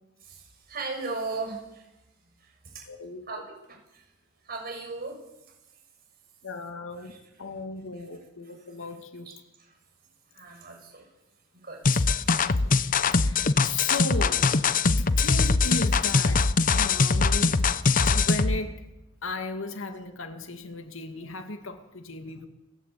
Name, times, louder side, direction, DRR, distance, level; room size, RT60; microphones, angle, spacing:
voice 1, 0.2-1.9 2.4-2.9 3.3-4.1 4.4-5.2 7.1-7.2 9.3-9.4 9.6-9.8 10.3-11.1 11.6-13.1 13.8-13.9, right 3 dB, 50° right, 7.1 m, -38 dB
voice 2, 2.9-3.2 6.4-7.1 7.4-9.3 12.6-16.5 16.7-17.6 18.1-18.8 19.2-22.5, left 2 dB, 85° left, 2.3 m, -36 dB
sound 1, 11.8-18.6, left 4 dB, 45° left, 0.8 m, -22 dB
29.5 x 11.5 x 8.6 m
head